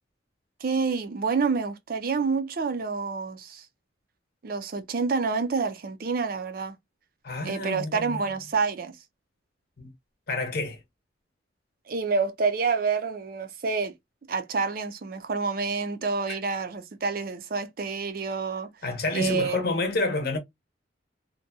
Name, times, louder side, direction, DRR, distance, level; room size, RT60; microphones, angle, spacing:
voice 1, 0.6-3.7 4.4-6.8 7.4-8.9 11.9-13.9 14.3-18.7 19.1-19.7, right 4 dB, 50° right, 0.4 m, -28 dB
voice 2, 7.2-8.2 9.8-9.9 10.3-10.8 16.3-16.4 18.8-20.4, left 3 dB, 50° left, 0.7 m, -28 dB
2.6 x 2.1 x 2.6 m
head